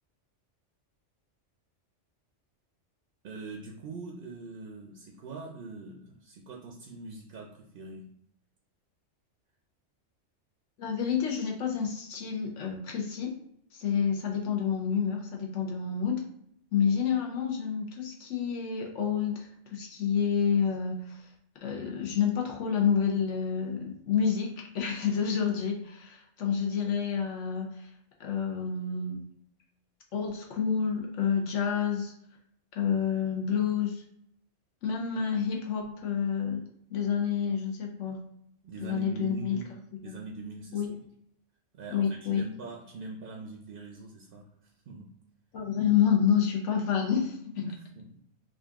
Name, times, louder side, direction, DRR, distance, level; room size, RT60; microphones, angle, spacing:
voice 1, 3.2-8.1 38.6-39.7 40.0-40.8 41.7-45.2 47.7-48.2, right 3 dB, 60° right, 0 dB, 0.6 m, -43 dB
voice 2, 10.8-13.3 13.7-16.2 16.7-21.3 21.6-27.9 28.2-29.2 30.1-32.1 32.7-34.0 34.8-36.6 36.9-38.2 38.8-39.6 39.9-40.2 40.7-40.9 41.9-42.4 45.5-47.7, left 7 dB, 75° left, 0 dB, 1.1 m, -29 dB
3.9 x 2.5 x 3.5 m, 0.71 s
omnidirectional pair, 1.3 m